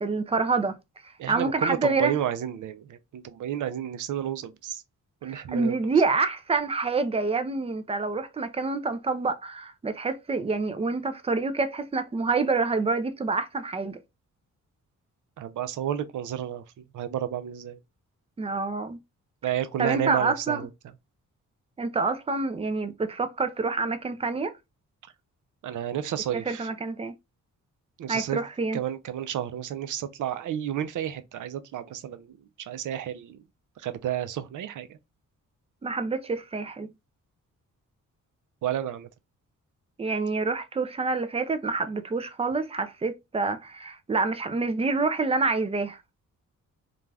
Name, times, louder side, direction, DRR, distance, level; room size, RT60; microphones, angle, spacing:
voice 1, 0.0-0.8 1.0-2.2 5.2-14.0 18.4-19.0 19.8-20.7 21.8-24.5 26.3-27.1 28.1-28.8 35.8-36.9 40.0-46.0, right 3 dB, 20° right, 0.4 m, -27 dB
voice 2, 1.2-4.8 5.2-5.8 15.4-17.8 19.4-20.7 25.6-26.7 28.0-28.4 28.7-33.4 33.8-35.0 38.6-39.1, right 10 dB, 75° right, 0.5 m, -31 dB
2.4 x 2.3 x 3.2 m
cardioid pair, 100°, 32 cm